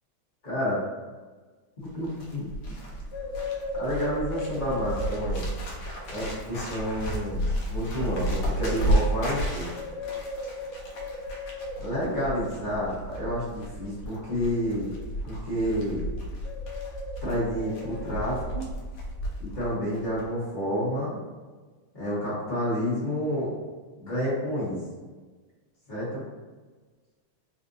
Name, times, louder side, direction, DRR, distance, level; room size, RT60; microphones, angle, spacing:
voice 1, 0.4-0.8 1.9-2.5 3.8-5.5 6.1-7.4 7.7-9.7 11.8-14.9 15.2-16.1 17.2-18.6 19.4-21.2 21.9-23.5 24.0-24.8 25.9-26.2, equal, 30° left, -10 dB, 1.0 m, -29 dB
Bird, 1.9-19.7 19.9-20.3, equal, 70° left, 1.0 m, -32 dB
3.6 x 2.5 x 2.5 m, 1.4 s
omnidirectional pair, 2.4 m